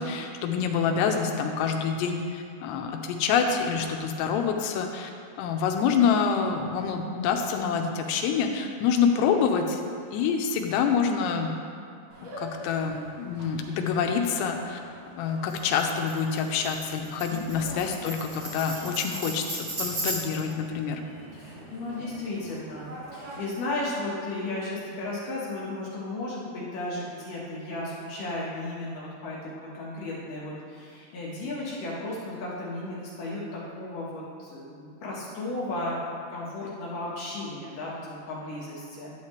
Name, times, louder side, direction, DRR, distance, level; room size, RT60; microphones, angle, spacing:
voice 1, 0.0-5.1 5.4-9.8 10.1-11.6 12.2-14.8 15.2-21.0, left 6 dB, 85° left, 3 dB, 2.8 m, -26 dB
sound 1, 12.1-23.4, right 1 dB, 75° right, 4.1 m, -46 dB
Tambourine, 15.5-20.5, right 1 dB, 40° right, 2.0 m, -36 dB
voice 2, 17.3-17.8 21.3-39.1, left 2 dB, 65° left, -6 dB, 2.5 m, -35 dB
11.5 x 7.3 x 3.1 m, 2.4 s
omnidirectional pair, 4.8 m